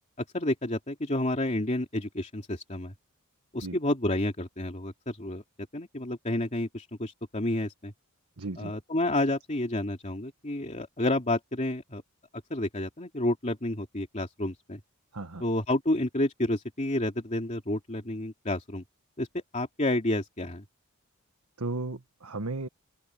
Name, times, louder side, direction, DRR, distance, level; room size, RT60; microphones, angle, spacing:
voice 1, 0.2-2.9 3.5-5.4 5.7-7.9 8.6-12.0 12.5-14.8 15.4-18.8 19.2-20.6, left 1 dB, 30° left, 2.8 m, -30 dB
voice 2, 8.4-8.7 15.1-15.4 21.6-22.7, right 2 dB, 80° right, 1.5 m, -35 dB
head